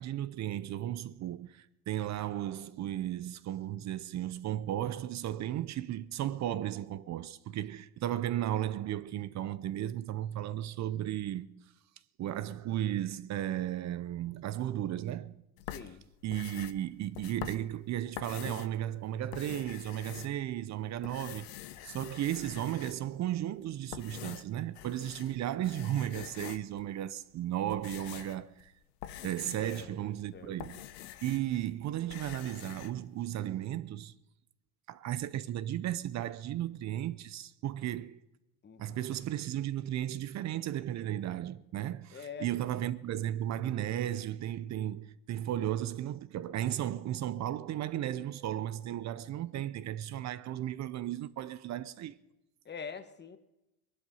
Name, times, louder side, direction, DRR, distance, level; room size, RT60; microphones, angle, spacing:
voice 1, 0.0-11.5 12.2-15.4 16.2-21.6 21.8-28.7 29.2-30.8 31.2-34.1 34.9-38.2 38.8-52.2, right 12 dB, 40° right, 0.6 m, -35 dB
sound 1, 15.6-18.8 19.2-20.7 21.0-23.2 23.7-25.4 25.6-26.8 27.4-31.6 31.9-32.9, left 13 dB, 80° left, 1.1 m, -46 dB
voice 2, 15.7-16.0 29.6-29.9 30.3-30.6 38.6-39.1 42.1-42.5 52.6-53.4, left 6 dB, 25° left, 1.3 m, -44 dB
20.5 x 11.5 x 5.6 m
supercardioid pair, 115°, 45 cm